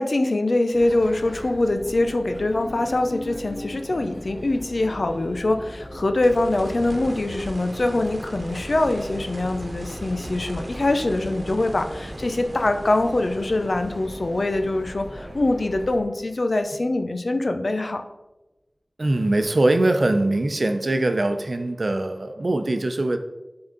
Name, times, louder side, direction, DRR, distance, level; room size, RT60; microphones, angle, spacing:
voice 1, 0.0-18.0, left 2 dB, 85° left, 7 dB, 0.6 m, -23 dB
sound 1, 0.7-16.0, equal, 15° left, 1.7 m, -39 dB
sound 2, 6.2-17.1 19.4-19.5, right 1 dB, 90° right, 1.0 m, -39 dB
voice 2, 19.0-23.2, right 2 dB, 75° right, 7 dB, 0.7 m, -22 dB
10.5 x 3.9 x 4.0 m, 1.0 s
wide cardioid pair, 50°, 0 cm